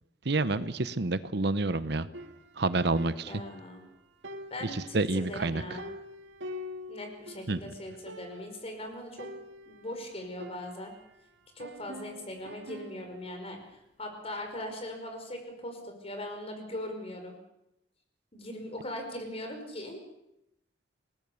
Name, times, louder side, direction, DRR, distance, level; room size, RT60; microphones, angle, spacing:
voice 1, 0.2-2.1 2.6-3.3 4.7-5.6 7.5-7.6, right 2 dB, 65° right, 13 dB, 1.0 m, -28 dB
sound 1, 2.1-3.9 4.2-7.5 7.8-7.9 8.1-8.7 9.2-11.2 11.6-13.3, left 1 dB, 90° right, 2.2 m, -46 dB
voice 2, 3.2-3.8 4.5-5.8 6.9-9.3 9.7-10.9 11.6-17.3 18.3-20.0, left 1 dB, 35° left, 4 dB, 5.4 m, -40 dB
29.0 x 19.5 x 7.2 m, 0.87 s
head